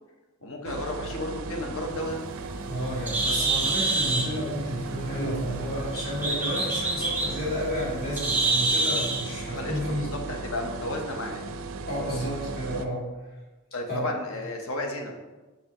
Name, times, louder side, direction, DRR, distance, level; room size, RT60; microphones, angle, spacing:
voice 1, 0.4-2.2 9.5-11.5 13.7-15.1, left 1 dB, 65° left, 2 dB, 0.8 m, -33 dB
sound 1, 0.6-12.9, right 3 dB, 60° right, 0.4 m, -37 dB
Bird, 2.0-9.3, right 3 dB, 10° right, 0.7 m, -28 dB
voice 2, 2.6-10.1 11.9-13.0 13.9-14.1, equal, 45° left, -7 dB, 2.0 m, -31 dB
5.9 x 5.5 x 2.9 m, 1.2 s
head